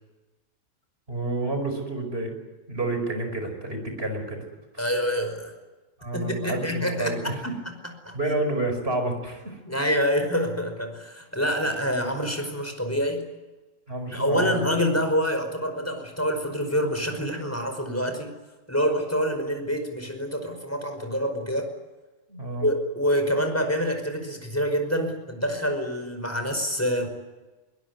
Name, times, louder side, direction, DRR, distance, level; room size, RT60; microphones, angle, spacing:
voice 1, 1.1-2.3 2.7-4.4 4.7-4.8 6.0-7.5 8.1-9.6 13.9-14.6 22.3-22.7, right 2 dB, 50° right, 5 dB, 5.5 m, -29 dB
voice 2, 4.8-5.5 6.1-7.2 8.0-8.2 9.7-13.3 14.1-18.3 18.7-21.7 22.6-27.1, equal, 10° left, 6 dB, 5.1 m, -26 dB
22.5 x 21.5 x 9.6 m, 1.2 s
omnidirectional pair, 1.3 m